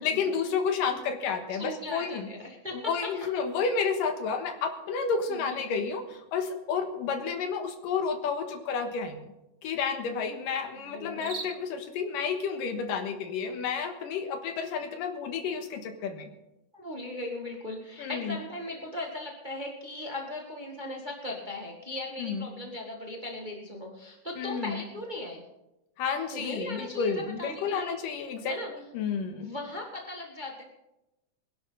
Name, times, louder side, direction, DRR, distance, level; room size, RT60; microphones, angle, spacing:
voice 1, 0.0-2.3 2.7-6.0 6.3-9.3 9.6-16.3 18.0-18.4 22.2-22.5 24.4-24.8 26.0-29.5, left 5 dB, 85° left, 6 dB, 3.0 m, -31 dB
voice 2, 1.6-3.1 5.3-5.8 10.7-11.3 16.7-25.4 26.3-28.0 28.5-28.7 29.4-30.6, left 1 dB, 20° right, 0 dB, 1.4 m, -38 dB
sound 1, 4.0-20.9, right 4 dB, 35° right, 2.0 m, -53 dB
21.5 x 11.0 x 4.0 m, 0.92 s
omnidirectional pair, 3.8 m